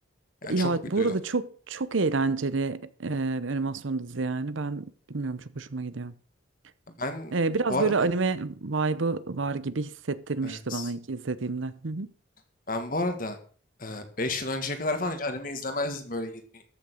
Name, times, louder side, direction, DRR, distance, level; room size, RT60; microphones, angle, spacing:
voice 1, 0.5-6.1 7.3-12.1, right 3 dB, 80° right, 0.8 m, -29 dB
voice 2, 7.0-7.3 7.7-7.9 10.4-10.9 12.7-13.4 13.8-16.6, left 2 dB, 45° left, 1.9 m, -31 dB
14.0 x 6.8 x 6.4 m
head